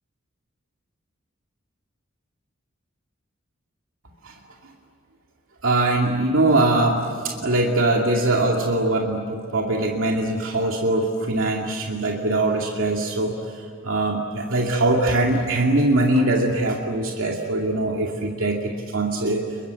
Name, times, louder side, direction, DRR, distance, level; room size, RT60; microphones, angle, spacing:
voice 1, 5.6-19.6, right 2 dB, 90° right, 0 dB, 2.4 m, -22 dB
29.5 x 22.5 x 8.4 m, 2.3 s
head